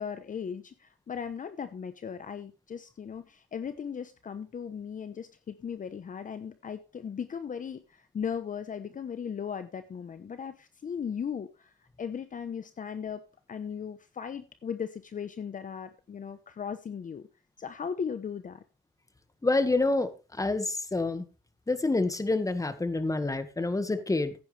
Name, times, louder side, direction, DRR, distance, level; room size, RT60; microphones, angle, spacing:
voice 1, 0.0-13.2 13.5-17.3 17.6-18.6, left 7 dB, 40° left, 11 dB, 1.0 m, -37 dB
voice 2, 19.4-21.3 21.7-24.3, left 2 dB, 15° left, 10 dB, 1.8 m, -27 dB
15.5 x 9.7 x 3.4 m, 0.31 s
cardioid pair, 90°, 20 cm